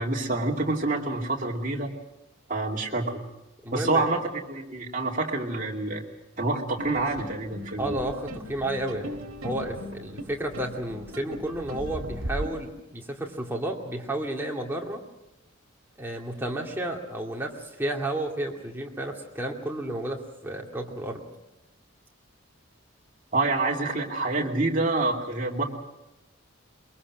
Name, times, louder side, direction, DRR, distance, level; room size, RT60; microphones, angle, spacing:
voice 1, 0.0-1.9 2.5-3.2 3.7-4.2 4.5-6.0 6.4-8.0 23.3-25.6, right 2 dB, 40° right, -1 dB, 2.6 m, -27 dB
voice 2, 3.6-4.1 7.8-15.0 16.0-21.2, right 1 dB, 10° right, -1 dB, 2.4 m, -32 dB
sound 1, 6.8-12.5, equal, 75° right, 2.1 m, -37 dB
22.5 x 22.5 x 6.2 m, 0.96 s
head